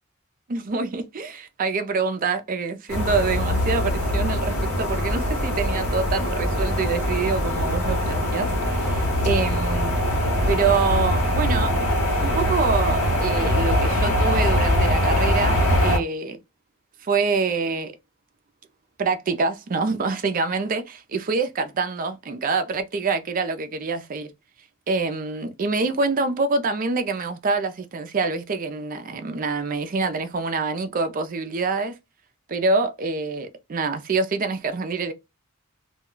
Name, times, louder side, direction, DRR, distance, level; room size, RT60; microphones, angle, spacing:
voice 1, 0.5-10.0 10.5-11.9 12.2-16.4 17.0-17.9 19.0-24.3 24.9-32.0 32.5-35.1, right 4 dB, 40° right, 0.4 m, -26 dB
sound 1, 2.9-16.0, equal, 85° left, 1.0 m, -22 dB
2.2 x 2.2 x 3.7 m
head